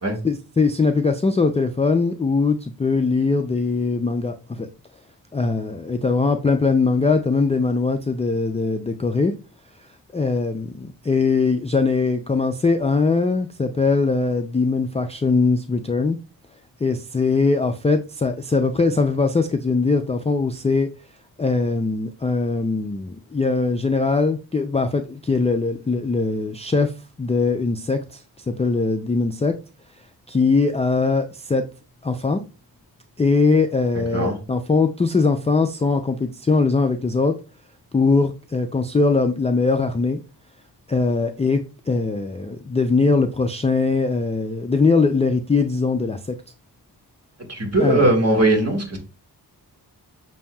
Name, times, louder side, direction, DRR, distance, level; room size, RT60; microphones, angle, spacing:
voice 1, 0.2-4.7 5.3-9.3 10.1-16.2 16.8-20.9 21.4-26.9 27.2-29.6 30.3-31.6 32.0-32.4 33.2-37.4 37.9-40.2 40.9-46.4 47.8-48.1, left 4 dB, 15° left, 0.3 m, -21 dB
voice 2, 47.5-49.0, right 1 dB, 40° right, 1.6 m, -19 dB
6.8 x 2.7 x 2.3 m
wide cardioid pair, 80°, 41 cm